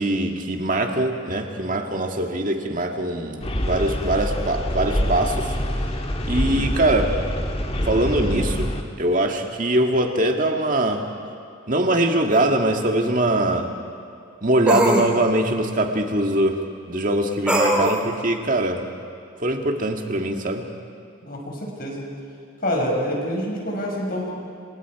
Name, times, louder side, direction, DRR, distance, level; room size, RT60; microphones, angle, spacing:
voice 1, 0.0-5.6 6.2-7.1 7.8-8.7 9.0-11.1 11.7-13.7 14.4-18.8 19.4-20.7, right 1 dB, 40° right, 3 dB, 2.0 m, -22 dB
sound 1, 3.4-8.8, equal, 30° left, 1.6 m, -25 dB
sound 2, 12.3-12.4 14.7-15.1 17.5-18.0, equal, 5° right, 2.7 m, -20 dB
voice 2, 21.3-22.0 22.6-24.3, equal, 45° left, -1 dB, 5.7 m, -27 dB
29.5 x 26.5 x 4.9 m, 2.5 s
head